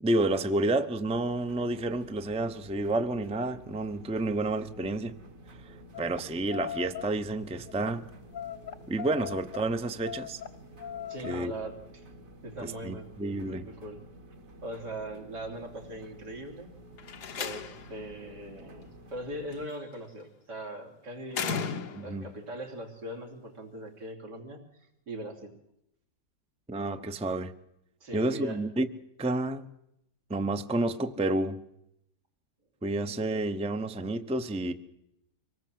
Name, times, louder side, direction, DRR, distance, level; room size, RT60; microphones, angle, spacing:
voice 1, 0.0-5.1 5.6-8.1 8.9-10.4 11.2-11.5 12.6-13.6 22.0-22.3 26.7-27.5 28.1-28.9 29.2-29.7 30.3-31.6 32.8-34.7, right 2 dB, 5° right, 9 dB, 0.7 m, -30 dB
sound 1, 1.0-19.7, equal, 55° right, 1.9 m, -51 dB
sound 2, 5.9-6.2 6.5-7.1 7.7-7.9 8.3-9.6 10.0-11.4, left 9 dB, 40° left, 1.0 m, -39 dB
voice 2, 11.1-12.1 12.4-13.1 13.4-14.1 14.6-16.7 17.4-24.6 25.1-25.5 28.0-28.6, right 1 dB, 85° right, 1 dB, 4.0 m, -40 dB
Slam, 17.0-18.0 19.5-20.0 21.3-22.3, left 6 dB, 75° left, 1.8 m, -35 dB
24.5 x 18.5 x 7.7 m, 0.80 s
omnidirectional pair, 1.8 m